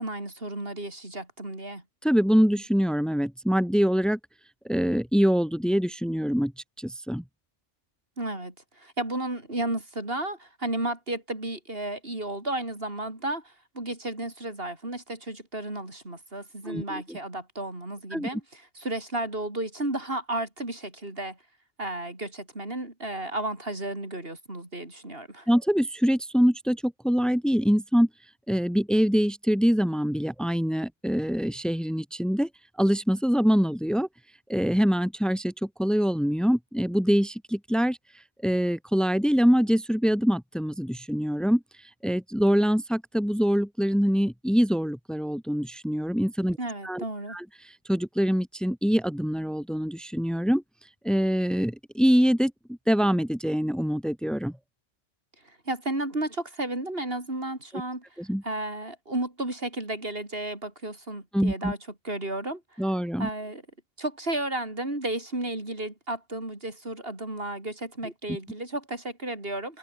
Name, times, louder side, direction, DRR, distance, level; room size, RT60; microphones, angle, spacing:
voice 1, 0.0-1.8 8.2-21.4 21.8-25.5 46.6-47.4 55.6-58.0 58.4-61.8 62.0-62.8 63.2-63.6 64.0-69.8, right 1 dB, 50° right, 5.1 m, -33 dB
voice 2, 2.0-4.2 4.6-6.5 6.8-7.2 16.6-17.2 18.1-18.3 25.5-28.1 28.5-32.5 32.8-34.1 34.5-38.0 38.4-41.6 42.0-46.6 46.8-47.4 47.9-50.6 51.0-52.5 52.9-54.5 58.2-58.4 61.3-61.7 62.8-63.3 68.0-68.1, equal, ahead, 3.2 m, -24 dB
omnidirectional pair, 1.3 m